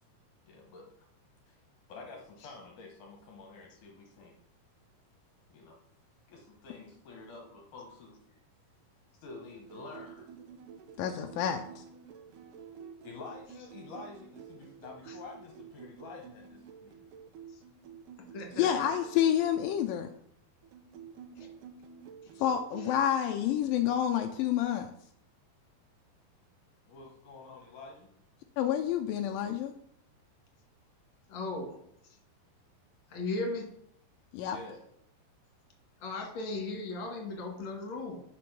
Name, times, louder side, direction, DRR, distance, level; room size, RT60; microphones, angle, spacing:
voice 1, 0.4-1.1 1.5-1.6 1.9-4.4 5.5-5.8 6.3-8.2 9.2-10.3 13.0-17.0 26.9-28.1 34.4-34.9, left 3 dB, 65° left, 1 dB, 2.2 m, -48 dB
sound 1, 9.5-19.8 20.6-22.9 24.1-24.6, right 7 dB, 70° right, 2.0 m, -50 dB
voice 2, 11.0-11.8 18.6-20.1 22.4-24.9 28.6-29.7 34.3-34.6, left 10 dB, 85° left, 6 dB, 2.0 m, -29 dB
voice 3, 18.3-18.7 22.3-22.4 31.3-31.7 33.1-33.7 36.0-38.2, left 2 dB, 40° left, 1 dB, 2.2 m, -36 dB
8.4 x 5.2 x 6.0 m, 0.70 s
omnidirectional pair, 4.6 m